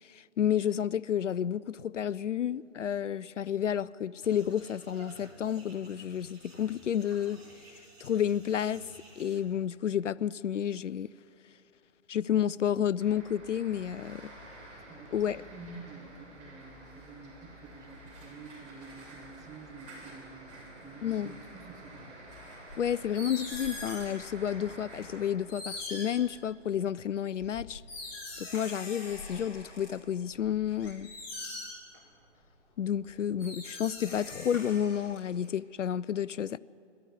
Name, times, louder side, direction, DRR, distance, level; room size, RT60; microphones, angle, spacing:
voice 1, 0.0-7.4 7.7-8.9 9.2-11.1 12.1-14.3 15.1-15.4 21.0-21.3 22.8-27.8 28.4-31.1 32.8-36.6, left 9 dB, 70° left, 0.5 m, -31 dB
sound 1, 4.2-9.4, right 2 dB, 55° right, 4.3 m, -54 dB
sound 2, 13.0-25.3, right 1 dB, 35° right, 7.5 m, -50 dB
voice 2, 14.9-22.1, right 4 dB, 10° right, 1.3 m, -49 dB
sound 3, 22.7-24.2 25.0-25.1 25.5-26.8 27.4-29.9 30.3-32.0 33.0-33.1 33.4-35.5, left 2 dB, 25° left, 5.7 m, -42 dB
22.0 x 14.5 x 9.9 m
figure-of-eight pair, 135°, 37 cm